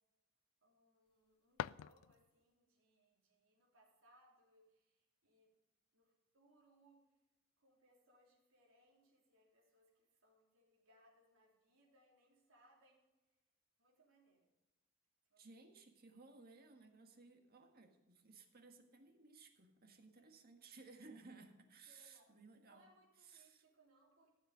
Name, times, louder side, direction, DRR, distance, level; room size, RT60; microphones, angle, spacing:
voice 1, 0.6-5.5 5.9-7.1 7.6-13.1 13.8-14.5 15.3-15.5 20.2-20.3 21.0-21.1 21.9-22.4 22.6-24.3, right 1 dB, 80° right, -2 dB, 3.5 m, -72 dB
sound 1, 1.1-2.5, left 9 dB, 90° left, 0.3 m, -47 dB
voice 2, 15.4-22.9 23.2-23.6, right 3 dB, 50° right, 5 dB, 1.6 m, -60 dB
14.0 x 7.8 x 5.1 m, 1.1 s
head